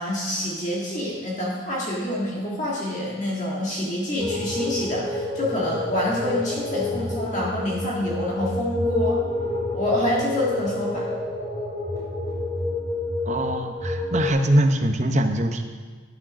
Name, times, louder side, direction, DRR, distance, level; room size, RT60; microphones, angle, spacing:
voice 1, 0.0-9.2 9.7-11.1, left 1 dB, 35° left, -5 dB, 1.7 m, -27 dB
sound 1, 4.2-14.3, left 2 dB, 15° right, 2.8 m, -29 dB
voice 2, 13.2-15.6, right 1 dB, 35° right, 5 dB, 0.8 m, -22 dB
11.5 x 6.3 x 6.1 m, 1.5 s
head